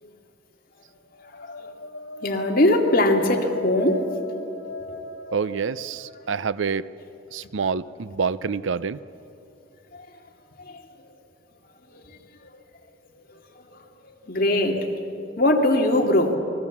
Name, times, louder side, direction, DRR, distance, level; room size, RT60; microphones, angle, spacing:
sound 1, 1.1-6.9, left 2 dB, 85° left, 2.5 m, -38 dB
voice 1, 2.2-4.0 9.9-10.1 10.7-10.8 11.9-12.0 14.2-14.8 15.4-16.4, left 1 dB, 45° left, 1 dB, 2.4 m, -21 dB
voice 2, 5.3-6.9 7.3-9.0, right 5 dB, 75° right, 17 dB, 0.5 m, -27 dB
28.0 x 20.5 x 7.3 m, 2.9 s
head